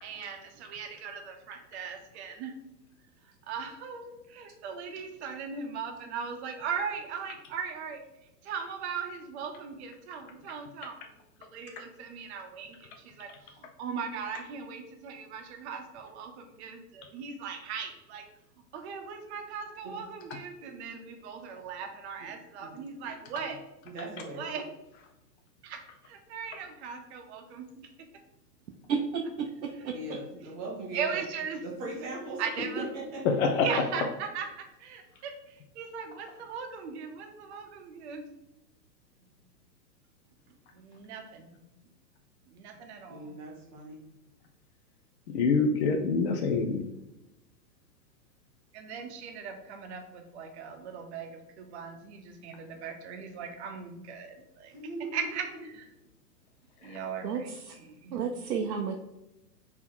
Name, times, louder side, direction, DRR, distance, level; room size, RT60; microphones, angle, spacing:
voice 1, 0.0-2.5 3.5-8.0 8.4-16.3 16.6-18.2 18.7-23.6 24.4-24.6 25.6-25.8 26.1-27.9 29.7-29.9 30.4-30.5 30.9-31.6 32.4-32.8 33.6-34.5 34.8-38.3 40.7-41.5 42.5-43.4 48.7-54.7 55.1-55.9 56.8-58.3, right 6 dB, 40° right, 4 dB, 0.8 m, -39 dB
voice 2, 23.9-24.6 29.9-31.2 31.6-32.8 33.1-33.2 43.1-44.0 54.7-55.3, right 1 dB, 10° right, -4 dB, 0.4 m, -39 dB
voice 3, 29.6-29.9 57.2-57.7 58.1-59.0, right 6 dB, 80° right, 1 dB, 0.7 m, -31 dB
voice 4, 33.3-33.7 45.3-46.8 56.8-57.0, left 4 dB, 45° left, 3 dB, 0.5 m, -25 dB
4.3 x 2.9 x 3.7 m, 0.91 s
hypercardioid pair, 130°, 50 cm